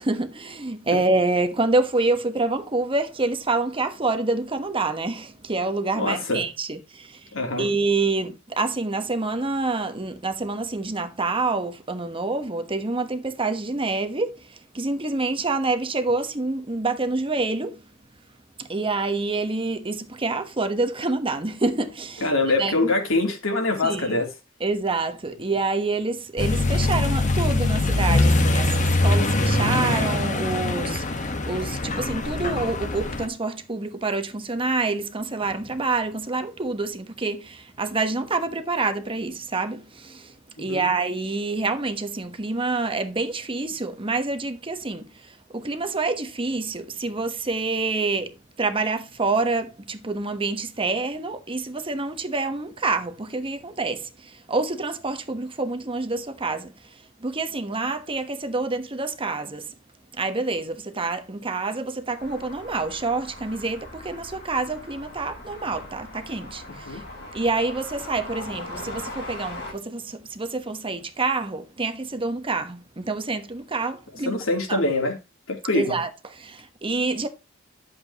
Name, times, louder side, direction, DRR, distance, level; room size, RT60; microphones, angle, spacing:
voice 1, 0.0-17.8 18.6-22.3 22.6-22.9 23.8-24.2 24.6-59.7 60.1-67.0 67.3-74.4 74.7-74.8 75.7-77.3, right 3 dB, 25° right, 1.1 m, -27 dB
voice 2, 6.0-6.4 7.3-7.7 22.2-24.3 40.5-40.9 66.9-67.0 74.3-75.1 75.5-76.0, left 2 dB, 80° left, 3.2 m, -24 dB
Accelerating revving vroom, 26.4-33.3, left 2 dB, 40° left, 1.3 m, -23 dB
sound 1, 62.2-69.7, left 2 dB, 60° left, 5.7 m, -40 dB
11.5 x 7.6 x 3.0 m
head